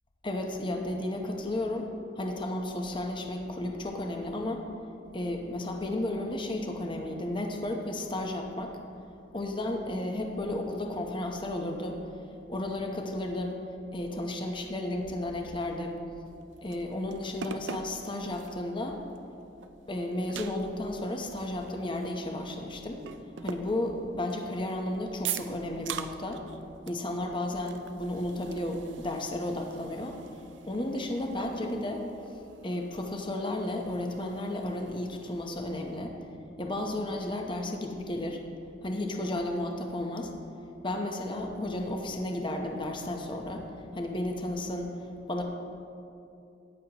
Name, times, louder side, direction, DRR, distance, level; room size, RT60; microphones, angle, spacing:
voice 1, 0.2-1.9 2.2-4.6 5.1-8.8 9.3-12.0 12.5-13.6 13.9-16.0 16.6-19.0 19.9-23.0 23.4-26.4 26.9-30.2 30.7-32.1 32.6-36.1 36.6-38.4 38.8-40.3 40.8-43.7 43.9-44.9 45.3-45.4, left 1 dB, 25° left, 2 dB, 0.8 m, -33 dB
sound 1, 16.3-18.7 19.2-19.3 19.6-22.7 23.0-24.8 25.2-26.6 26.9-27.1 27.3-36.0, right 8 dB, 75° right, 0.5 m, -43 dB
14.5 x 9.8 x 2.9 m, 2.6 s
head